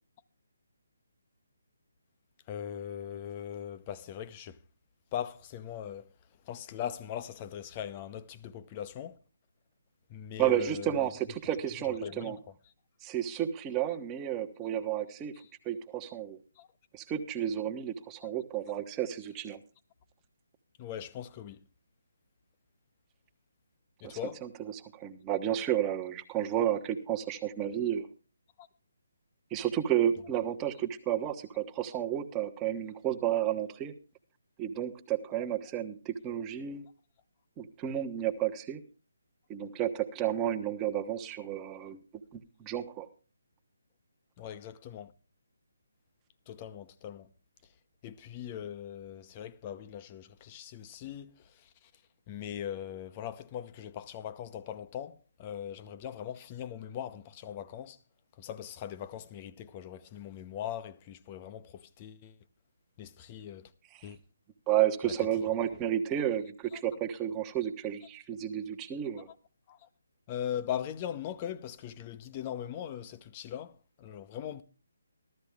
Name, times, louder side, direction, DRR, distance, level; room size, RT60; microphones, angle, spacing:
voice 1, 2.5-4.6 5.1-6.1 6.4-9.2 10.1-11.1 11.8-12.4 15.3-15.5 16.6-16.7 18.2-18.3 20.8-21.7 24.0-24.4 28.6-28.7 44.4-45.1 46.5-47.3 48.0-51.9 52.3-58.0 58.4-62.4 63.0-63.7 64.0-64.2 65.0-65.3 66.7-66.8 69.3-69.4 69.7-69.9 70.3-74.6, left 10 dB, 25° left, 0.8 m, -40 dB
voice 2, 10.4-12.4 13.0-15.3 15.6-16.4 16.9-19.6 24.0-28.1 29.5-33.9 34.6-36.9 37.6-38.8 39.5-42.0 42.3-43.1 64.7-69.3, right 11 dB, 20° right, 1.1 m, -32 dB
14.5 x 13.0 x 3.5 m
figure-of-eight pair, 145°, 0 cm